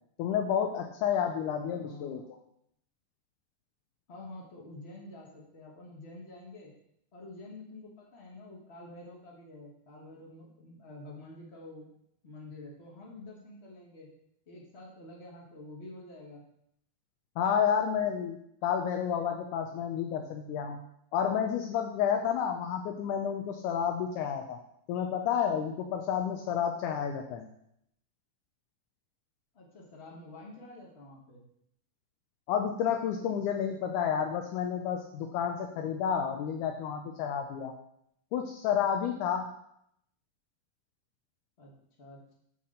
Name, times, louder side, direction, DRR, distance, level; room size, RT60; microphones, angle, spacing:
voice 1, 0.2-2.2 17.4-20.8 21.1-24.6 24.9-27.5 32.5-37.7 38.3-39.5, left 8 dB, 80° left, 3 dB, 2.1 m, -30 dB
voice 2, 1.6-2.3 4.1-6.7 7.1-11.9 12.2-14.1 14.5-16.4 29.5-31.4 41.6-42.3, left 2 dB, 55° left, -2 dB, 0.7 m, -48 dB
8.2 x 6.0 x 3.8 m, 0.73 s
omnidirectional pair, 3.6 m